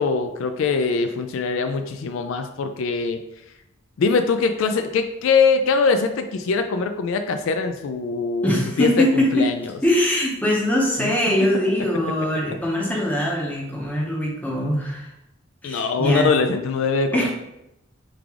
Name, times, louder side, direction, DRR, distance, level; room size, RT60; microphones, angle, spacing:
voice 1, 0.0-3.2 4.0-9.8 11.0-11.4 15.6-17.3, left 4 dB, 65° left, 7 dB, 0.3 m, -22 dB
voice 2, 8.4-9.5 9.8-15.1 15.6-16.3 17.1-17.3, equal, 5° left, -2 dB, 0.7 m, -22 dB
3.6 x 3.3 x 3.5 m, 0.88 s
head